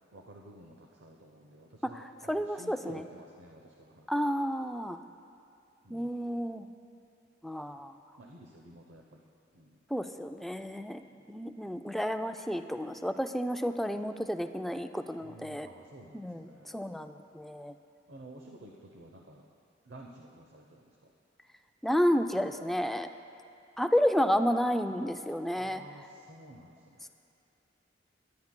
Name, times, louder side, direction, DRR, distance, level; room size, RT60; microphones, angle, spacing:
voice 1, 0.1-4.1 5.8-6.2 7.7-7.8 8.2-9.2 9.5-9.7 15.2-16.8 18.1-19.5 19.9-20.8 25.5-27.1, right 1 dB, 85° right, 0 dB, 0.8 m, -52 dB
voice 2, 1.8-3.0 4.1-5.0 5.9-6.7 7.4-7.9 9.9-11.0 11.3-15.7 16.1-17.7 21.8-23.1 23.8-25.8, equal, ahead, 6 dB, 0.3 m, -31 dB
22.5 x 10.5 x 2.2 m, 2.7 s
head